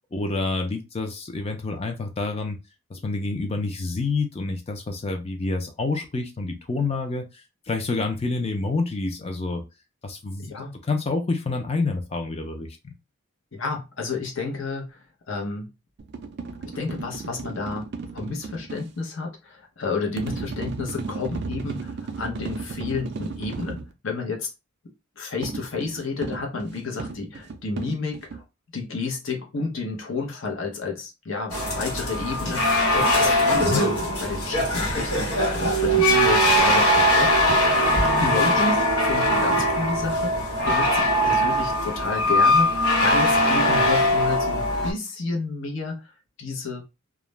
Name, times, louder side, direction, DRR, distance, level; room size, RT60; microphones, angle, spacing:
voice 1, 0.1-2.6 2.9-7.3 7.7-9.6 10.0-10.5 10.9-12.9 33.6-33.8, left 3 dB, 25° left, 0.4 m, -28 dB
voice 2, 13.5-15.7 16.7-17.9 18.1-24.5 25.2-28.4 28.7-37.8 38.2-46.1 46.4-46.8, left 4 dB, 60° left, 0.7 m, -31 dB
sound 1, 16.0-18.9 20.2-23.9 25.4-28.4, right 4 dB, 50° right, 0.3 m, -34 dB
sound 2, 31.5-44.9, equal, 85° left, 1.1 m, -21 dB
2.4 x 2.0 x 3.1 m
head